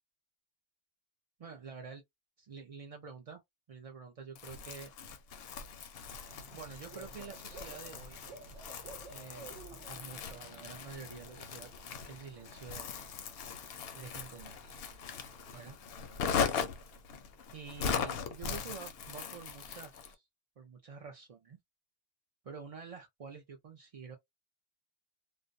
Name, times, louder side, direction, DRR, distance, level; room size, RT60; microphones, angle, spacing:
voice 1, 1.4-2.0 2.4-3.4 3.7-4.9 6.5-8.2 9.1-11.7 12.0-12.9 13.9-14.7 15.5-15.8 17.5-20.3 20.6-21.6 22.4-24.2, right 5 dB, 55° right, 0.4 m, -48 dB
Crumpling crinkling, 4.3-20.1, left 6 dB, 65° left, 0.7 m, -39 dB
Bird / Cricket, 6.0-15.7, right 3 dB, 90° right, 1.0 m, -54 dB
2.4 x 2.1 x 2.5 m
omnidirectional pair, 1.2 m